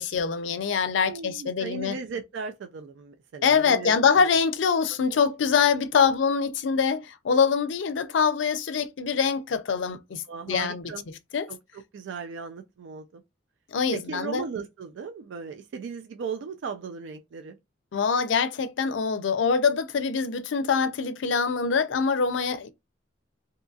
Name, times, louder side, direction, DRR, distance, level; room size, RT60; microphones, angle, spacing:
voice 1, 0.0-2.0 3.4-10.9 11.3-11.5 13.7-14.4 17.9-22.7, left 6 dB, 80° left, 0.4 m, -24 dB
voice 2, 1.0-4.0 5.1-5.2 10.3-11.0 11.5-13.2 13.9-17.6, right 5 dB, 75° right, 0.3 m, -37 dB
2.7 x 2.4 x 2.5 m
head